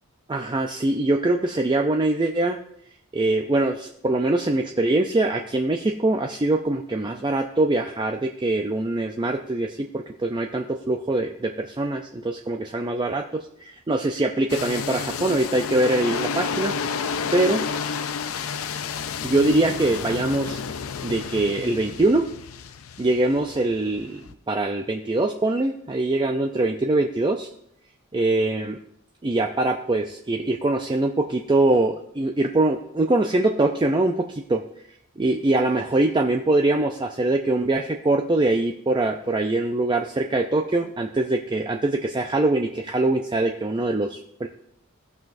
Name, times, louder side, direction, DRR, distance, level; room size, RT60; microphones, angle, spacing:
voice 1, 0.3-2.6 3.1-13.2 13.6-16.7 17.3-17.6 19.2-20.6 21.0-22.3 23.0-24.2 24.5-27.5 28.1-28.8 29.2-34.6 35.2-44.5, right 2 dB, 20° right, 3 dB, 0.4 m, -23 dB
sound 1, 14.5-24.3, left 6 dB, 70° left, 0.5 m, -31 dB
17.5 x 6.0 x 2.6 m, 0.72 s
head